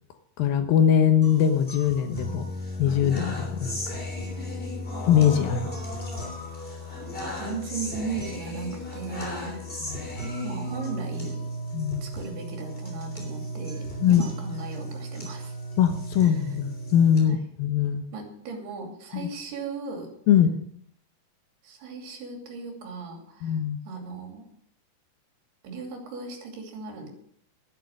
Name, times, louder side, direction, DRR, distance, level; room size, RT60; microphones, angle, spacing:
voice 1, 0.4-2.5 2.8-3.7 5.1-5.7 9.9-10.1 11.7-12.1 14.0-14.2 15.8-18.0 20.3-20.5 23.4-23.8, left 9 dB, 70° left, 8 dB, 2.6 m, -21 dB
sound 1, 1.2-17.2, equal, 15° left, 2.9 m, -35 dB
voice 2, 7.4-9.7 10.4-11.4 12.0-15.6 16.2-16.6 17.2-17.4 18.1-20.1 21.6-24.5 25.6-27.1, right 4 dB, 75° right, 2 dB, 4.7 m, -37 dB
11.5 x 11.5 x 6.4 m, 0.64 s
omnidirectional pair, 4.6 m